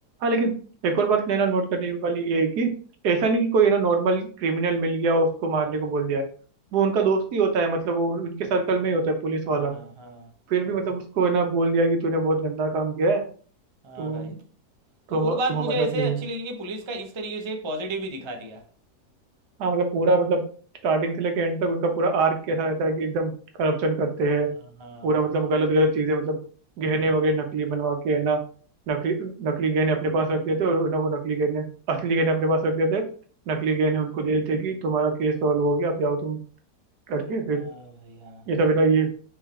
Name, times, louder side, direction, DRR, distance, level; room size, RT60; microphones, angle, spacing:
voice 1, 0.2-2.7 3.0-6.2 6.7-9.7 10.5-13.2 14.0-14.4 15.1-16.2 19.6-20.4 20.8-23.3 23.6-24.5 25.0-26.4 26.8-28.4 28.9-33.0 33.5-36.4 37.1-37.6 38.5-39.1, right 3 dB, 85° right, 1.4 m, -23 dB
voice 2, 9.5-10.3 13.8-14.3 15.1-18.6 24.8-25.1 37.5-38.4, right 1 dB, 45° right, 0.3 m, -32 dB
4.4 x 3.6 x 3.2 m
omnidirectional pair, 1.7 m